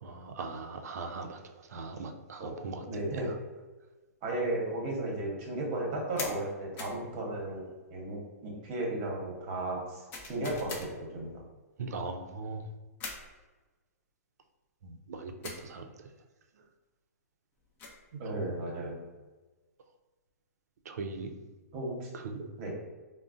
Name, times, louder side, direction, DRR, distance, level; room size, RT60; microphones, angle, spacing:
voice 1, 0.0-2.9 11.8-12.7 14.8-15.9 18.1-18.4 20.9-21.3 22.1-22.5, right 3 dB, 75° right, 6 dB, 0.4 m, -40 dB
voice 2, 2.9-3.3 4.2-11.4 18.2-19.0 21.7-22.1 22.6-22.7, right 1 dB, 35° right, -1 dB, 0.8 m, -35 dB
sound 1, 6.2-6.4 6.8-7.0 10.1-10.9 13.0-13.3 15.4-15.7 17.5-18.0, left 3 dB, 20° left, 0.4 m, -41 dB
3.7 x 2.0 x 2.4 m, 1.2 s
hypercardioid pair, 150°, 9 cm